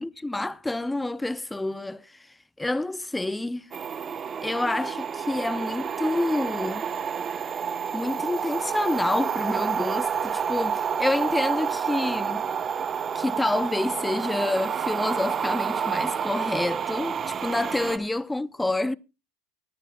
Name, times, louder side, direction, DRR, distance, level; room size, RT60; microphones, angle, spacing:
voice 1, 0.0-3.7 4.4-6.9 7.9-12.5 13.1-19.0, left 2 dB, 10° left, 0.5 m, -28 dB
sound 1, 3.7-18.0, right 7 dB, 30° right, 1.1 m, -29 dB
18.5 x 11.5 x 2.3 m
supercardioid pair, 110°, 0 cm